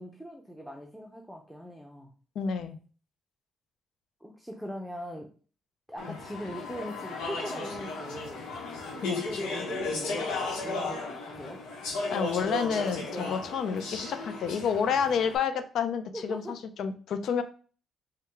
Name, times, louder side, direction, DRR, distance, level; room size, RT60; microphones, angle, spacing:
voice 1, 0.0-2.1 4.2-5.3 5.9-8.4 8.9-11.6 13.1-13.4 16.1-16.6, equal, ahead, 1 dB, 0.6 m, -40 dB
voice 2, 2.4-2.8 6.1-6.2 9.0-9.2 12.1-17.4, left 7 dB, 70° left, 10 dB, 0.5 m, -29 dB
Speech / Chatter, 6.0-15.4, left 3 dB, 90° left, 1.0 m, -35 dB
4.7 x 2.2 x 3.4 m, 0.39 s
cardioid pair, 90°, 0 cm